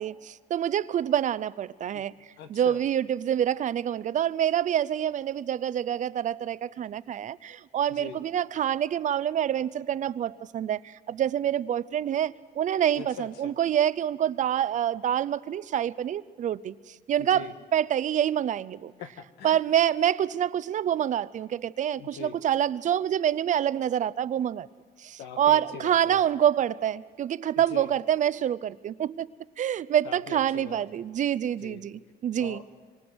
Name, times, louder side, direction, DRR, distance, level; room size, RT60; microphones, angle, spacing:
voice 1, 0.0-2.1 2.5-18.9 19.4-24.7 25.0-29.3 29.6-32.6, right 10 dB, 45° right, 0.6 m, -27 dB
voice 2, 2.4-2.8 7.9-8.2 13.0-13.5 17.2-17.5 19.0-19.6 22.0-22.4 25.2-26.2 27.5-27.9 30.0-31.0 31.5-31.8 32.4-32.6, left 7 dB, 85° left, 1.6 m, -42 dB
25.5 x 24.5 x 6.2 m
cardioid pair, 110°, 17 cm